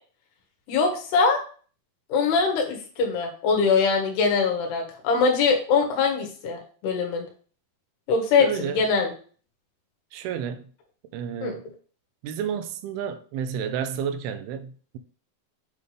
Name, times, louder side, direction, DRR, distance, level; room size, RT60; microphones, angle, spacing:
voice 1, 0.7-1.4 2.1-7.3 8.1-9.1 11.4-11.5, left 5 dB, 90° left, 3.6 m, -22 dB
voice 2, 8.4-8.8 10.1-10.7 11.1-11.7 12.2-15.0, right 8 dB, 90° right, 2.6 m, -31 dB
8.4 x 3.4 x 5.4 m
omnidirectional pair, 4.5 m